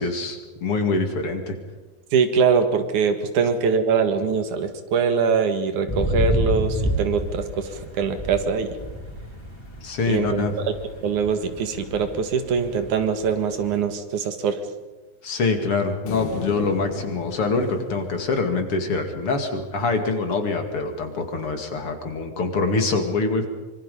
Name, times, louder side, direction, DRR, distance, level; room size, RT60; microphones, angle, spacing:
voice 1, 0.0-1.6 9.8-10.5 15.2-23.5, left 3 dB, 50° left, 5 dB, 3.0 m, -24 dB
voice 2, 2.1-8.7 10.1-10.5 11.0-14.6, right 6 dB, 85° right, 8 dB, 3.2 m, -23 dB
sound 1, 5.9-13.8, equal, 10° left, 3.7 m, -29 dB
sound 2, 16.1-19.4, left 7 dB, 85° left, 3.0 m, -36 dB
25.5 x 24.0 x 5.5 m, 1.3 s
omnidirectional pair, 3.4 m